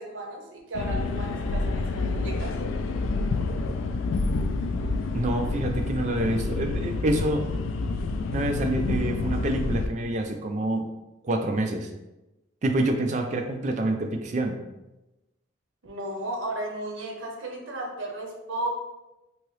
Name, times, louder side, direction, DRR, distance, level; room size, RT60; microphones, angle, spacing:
voice 1, 0.0-2.5 15.8-18.7, right 1 dB, 80° right, 1 dB, 0.7 m, -34 dB
sound 1, 0.7-9.9, left 3 dB, 85° left, 0.3 m, -28 dB
voice 2, 5.1-7.4 8.3-10.9 11.2-11.9 12.6-14.6, right 1 dB, 40° right, 4 dB, 0.3 m, -27 dB
2.9 x 2.7 x 3.1 m, 1.0 s
head